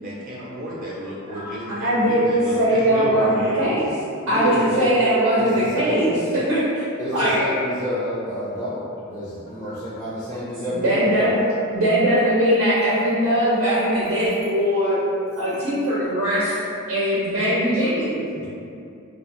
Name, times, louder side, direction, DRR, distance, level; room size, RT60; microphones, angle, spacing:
voice 1, 0.0-3.7, equal, 40° right, -7 dB, 0.6 m, -31 dB
voice 2, 1.3-3.9 4.3-6.8 7.1-7.5 9.7-9.8 10.7-11.4 11.7-15.0 15.4-16.6 16.9-18.3, equal, 80° right, -10 dB, 0.6 m, -21 dB
voice 3, 4.2-4.9 5.4-6.2 7.0-8.8 9.1-11.5 18.4-18.5, equal, 15° left, -9 dB, 0.4 m, -29 dB
2.5 x 2.2 x 3.0 m, 2.5 s
head